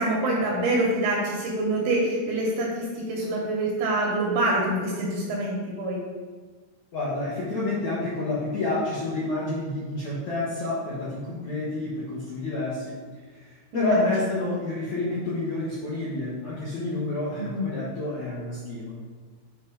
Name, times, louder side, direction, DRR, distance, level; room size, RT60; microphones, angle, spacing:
voice 1, 0.0-6.0 13.7-14.3 17.4-17.7, right 1 dB, 75° right, -2 dB, 2.4 m, -26 dB
voice 2, 6.9-12.9 13.3-19.0, left 2 dB, 85° left, -9 dB, 1.6 m, -29 dB
8.4 x 3.5 x 4.9 m, 1.4 s
omnidirectional pair, 5.4 m